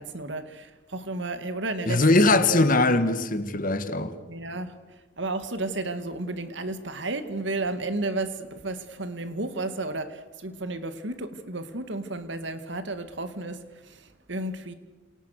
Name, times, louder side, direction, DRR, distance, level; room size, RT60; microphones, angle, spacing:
voice 1, 0.0-2.7 4.3-4.7 5.2-14.7, right 2 dB, 60° right, 2.2 m, -32 dB
voice 2, 1.9-4.2, left 2 dB, 45° left, 1.9 m, -21 dB
29.0 x 27.5 x 6.7 m
head